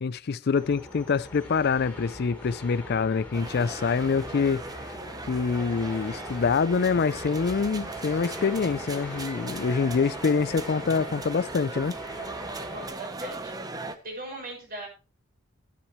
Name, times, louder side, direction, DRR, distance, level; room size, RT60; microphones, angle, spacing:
voice 1, 0.0-4.9 5.3-11.9, left 5 dB, 50° left, 0.4 m, -26 dB
sound 1, 0.5-12.9, left 1 dB, 5° left, 3.0 m, -42 dB
sound 2, 3.3-14.0, right 3 dB, 20° right, 0.9 m, -38 dB
voice 2, 12.7-13.8 14.0-14.9, right 2 dB, 45° right, 6.0 m, -39 dB
13.5 x 10.0 x 3.1 m
head